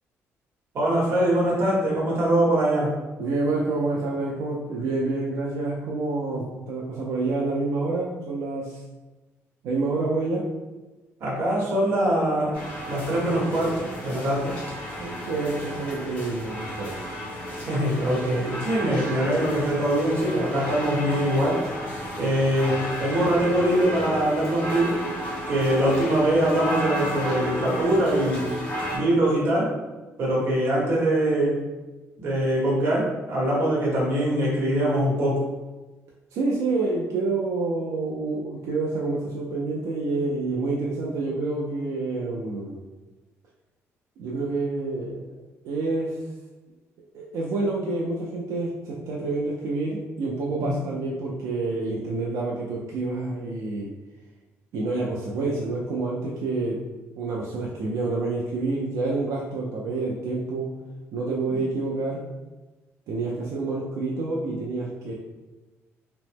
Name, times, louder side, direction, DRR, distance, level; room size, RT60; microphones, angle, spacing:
voice 1, 0.7-2.9 11.2-12.6 12.9-14.5 17.7-21.6 22.2-25.0 25.5-28.5 28.9-29.7 30.2-31.6 32.2-35.5 50.6-50.7, right 1 dB, 50° right, -4 dB, 1.0 m, -23 dB
voice 2, 3.2-8.8 9.6-10.4 15.0-17.0 36.3-42.8 44.2-45.2 45.6-46.2 47.1-53.9 54.7-56.8 57.2-60.7 61.1-62.2 63.1-65.1, right 3 dB, 80° right, -3 dB, 0.4 m, -28 dB
sound 1, 12.5-29.0, equal, 25° left, 1.0 m, -32 dB
2.9 x 2.0 x 3.3 m, 1.2 s
cardioid pair, 170°, 5 cm